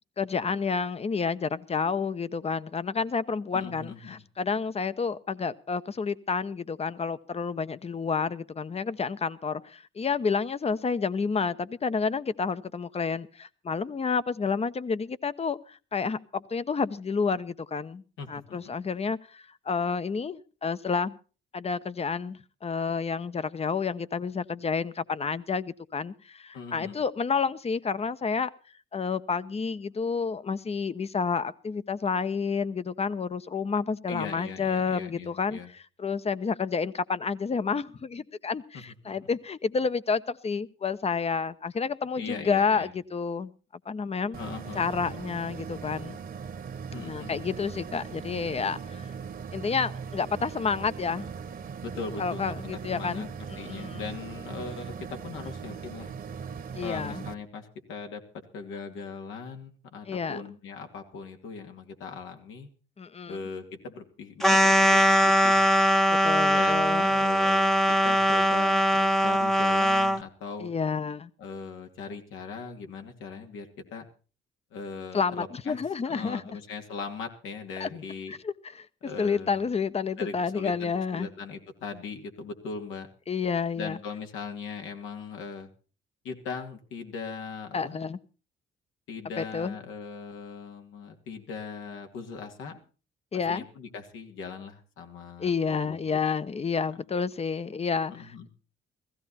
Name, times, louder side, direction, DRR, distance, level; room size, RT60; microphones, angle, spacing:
voice 1, 0.2-21.1 21.5-28.5 28.9-43.5 43.9-44.4 44.7-46.2 47.0-49.1 49.5-51.3 52.2-54.0 56.7-57.2 60.1-60.4 63.0-63.4 66.2-67.1 70.6-71.3 75.1-76.6 77.8-77.9 78.3-78.9 79.2-81.3 83.3-84.0 87.7-88.2 89.4-89.7 93.3-93.6 95.4-98.5, left 5 dB, 30° left, 0.9 m, -30 dB
voice 2, 3.5-4.2 18.2-18.7 26.5-27.0 34.1-35.7 38.7-38.8 39.2-39.3 42.2-42.9 44.4-44.8 46.9-47.4 51.8-52.5 52.9-53.3 53.6-56.1 56.8-58.2 58.5-62.7 63.3-65.8 66.5-70.7 71.4-74.1 74.7-75.8 76.0-78.3 79.0-79.6 80.2-83.1 83.8-85.7 86.2-88.0 89.1-92.8 93.3-96.2 98.1-98.5, left 5 dB, 85° left, 2.6 m, -39 dB
sound 1, 44.3-57.3, right 6 dB, 45° right, 1.3 m, -39 dB
sound 2, 64.4-70.2, equal, ahead, 0.9 m, -21 dB
16.0 x 15.5 x 4.3 m
cardioid pair, 90°, 20 cm